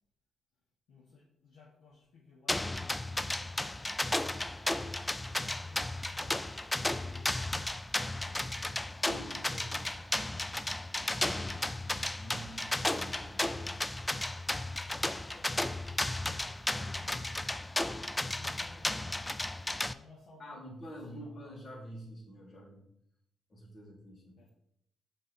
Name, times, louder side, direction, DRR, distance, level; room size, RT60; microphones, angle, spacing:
voice 1, 0.9-4.6 5.3-7.6 12.2-12.4 14.7-17.3 18.1-19.4 19.8-20.6 21.1-21.3 24.4-24.5, left 4 dB, 80° left, -4 dB, 1.0 m, -58 dB
sound 1, 2.5-19.9, left 1 dB, 15° left, 0.4 m, -34 dB
voice 2, 9.0-9.9 12.2-13.8 20.4-22.9 23.5-24.4, equal, 55° left, -1 dB, 2.2 m, -47 dB
5.6 x 3.5 x 5.0 m, 0.74 s
hypercardioid pair, 45°, 0 cm